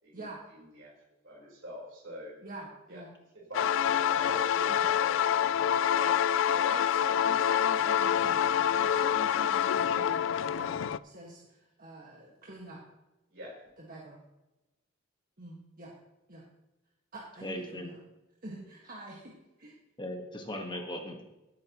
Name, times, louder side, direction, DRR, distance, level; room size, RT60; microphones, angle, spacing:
voice 1, 0.5-0.9 1.2-2.3 2.9-3.0 3.3-6.8 13.3-13.6, left 1 dB, 70° right, -2 dB, 4.2 m, -45 dB
voice 2, 2.4-3.1 4.7-4.9 6.7-8.4 8.7-12.8 13.8-14.2 15.4-15.9 16.3-16.4 17.1-18.0 18.4-19.7, right 1 dB, 45° right, -3 dB, 1.7 m, -46 dB
sound 1, 3.5-11.0, left 9 dB, 70° left, 0.3 m, -26 dB
voice 3, 17.4-17.9 20.0-21.2, left 1 dB, 25° left, 3 dB, 1.4 m, -38 dB
16.5 x 8.5 x 3.0 m, 0.98 s
head